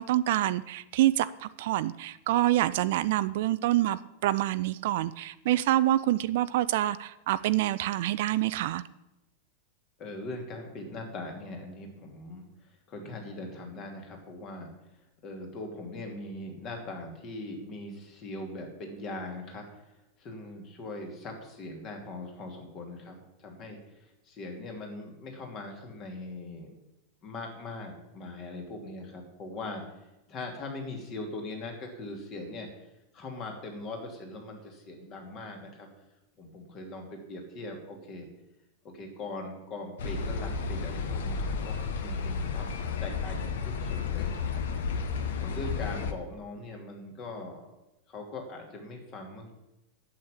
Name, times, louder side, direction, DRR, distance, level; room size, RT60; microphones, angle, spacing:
voice 1, 0.0-8.8, right 14 dB, 50° right, 15 dB, 0.4 m, -26 dB
voice 2, 10.0-26.7 27.2-29.8 30.3-32.9 33.1-35.9 36.4-38.3 38.8-42.7 43.0-44.6 45.3-47.6 48.1-49.5, left 2 dB, 35° left, 3 dB, 2.9 m, -41 dB
sound 1, 40.0-46.1, left 5 dB, 60° left, 1.1 m, -32 dB
8.7 x 7.7 x 8.5 m, 0.92 s
figure-of-eight pair, 90°, 0 cm